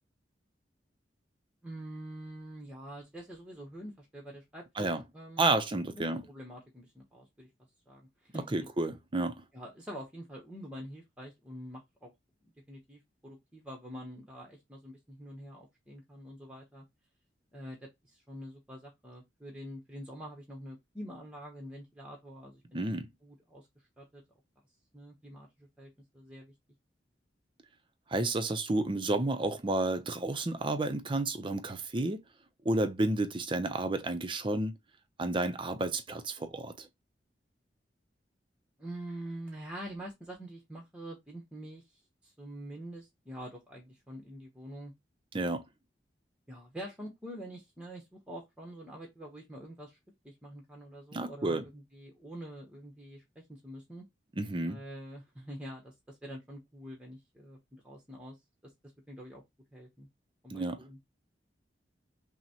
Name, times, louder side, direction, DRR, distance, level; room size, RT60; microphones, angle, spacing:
voice 1, 1.6-5.5 5.9-7.5 7.9-8.7 9.5-12.1 12.7-16.8 17.5-22.8 23.2-23.7 24.0-24.2 24.9-26.5 38.8-41.8 42.2-44.9 46.5-50.0 50.2-54.0 54.6-58.4 58.6-58.7 59.1-59.4 59.7-60.1 60.4-61.0, equal, 5° right, 0.9 m, -46 dB
voice 2, 5.4-6.2 8.3-9.4 22.7-23.1 28.1-32.2 32.6-34.7 35.2-36.9 45.3-45.6 51.1-51.6 54.4-54.8 60.5-60.8, right 2 dB, 30° right, 0.5 m, -31 dB
5.8 x 2.1 x 2.9 m
head